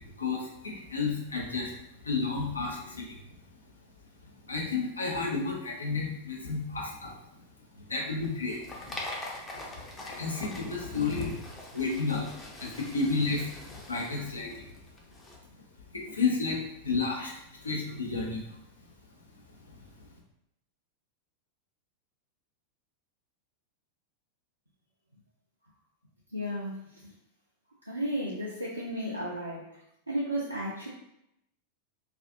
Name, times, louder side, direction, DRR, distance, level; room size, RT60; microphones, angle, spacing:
voice 1, 0.2-1.8 2.0-3.1 4.5-7.1 7.9-9.0 9.7-11.4 11.7-12.3 12.6-13.5 13.9-14.7 15.9-17.3 17.6-18.4, left 4 dB, 75° left, -2 dB, 0.6 m, -31 dB
sound 1, 8.2-15.4, left 2 dB, 15° left, 0.5 m, -43 dB
voice 2, 26.3-27.1 27.8-30.9, equal, 85° right, -6 dB, 0.4 m, -34 dB
2.4 x 2.4 x 2.6 m, 0.82 s
figure-of-eight pair, 90°, 0 cm